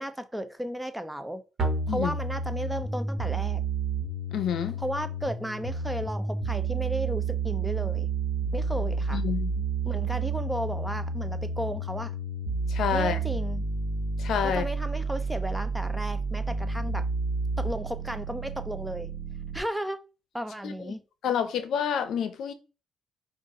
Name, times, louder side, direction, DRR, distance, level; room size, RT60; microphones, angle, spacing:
voice 1, 0.0-1.4 1.9-3.6 4.8-8.1 8.5-9.2 9.8-12.1 12.9-13.7 14.4-17.1 17.6-19.1 19.5-20.0 20.3-21.0, equal, 5° right, 0.5 m, -34 dB
sound 1, 1.6-19.6, right 4 dB, 50° right, 1.4 m, -30 dB
voice 2, 4.3-4.8 9.1-9.6 12.7-13.2 14.2-14.7 20.6-20.9 21.2-22.5, left 8 dB, 70° left, 0.6 m, -28 dB
5.2 x 2.5 x 3.7 m
cardioid pair, 90°, 0 cm